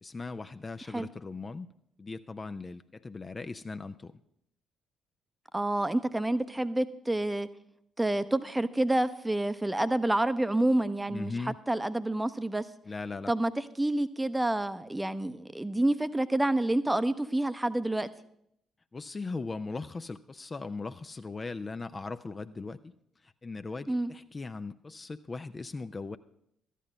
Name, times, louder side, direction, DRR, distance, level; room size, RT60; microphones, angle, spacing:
voice 1, 0.0-1.7 2.0-4.1 11.1-11.6 12.9-13.3 18.9-22.9 23.2-26.2, left 3 dB, 30° left, 10 dB, 0.5 m, -39 dB
voice 2, 5.5-7.5 8.0-11.3 11.7-12.7 13.3-13.5 13.8-18.1 23.9-24.1, right 1 dB, 10° right, 14 dB, 0.7 m, -28 dB
13.5 x 10.0 x 5.2 m, 0.74 s
figure-of-eight pair, 45°, 0 cm